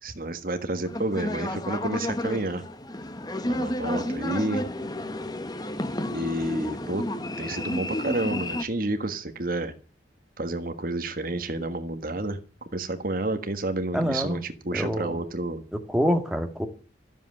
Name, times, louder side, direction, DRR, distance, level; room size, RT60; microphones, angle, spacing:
voice 1, 0.0-2.6 3.4-4.7 6.1-7.0 7.4-9.7 10.4-12.4 12.7-15.6, right 2 dB, 50° right, 9 dB, 1.4 m, -30 dB
sound 1, 0.8-8.6, left 1 dB, 20° left, 1.1 m, -31 dB
voice 2, 13.9-14.4 14.7-15.2 15.7-16.7, equal, 5° right, 5 dB, 1.8 m, -26 dB
13.5 x 7.6 x 9.7 m, 0.38 s
head